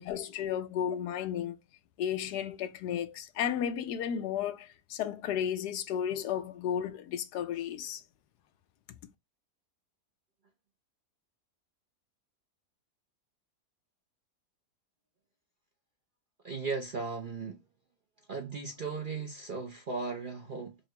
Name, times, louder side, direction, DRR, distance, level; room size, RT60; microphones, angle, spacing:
voice 1, 0.0-1.6 2.0-8.0, left 9 dB, 85° left, 1.2 m, -33 dB
voice 2, 16.4-17.6 18.3-20.8, right 4 dB, 50° right, 0.6 m, -36 dB
5.4 x 2.3 x 2.9 m
omnidirectional pair, 1.7 m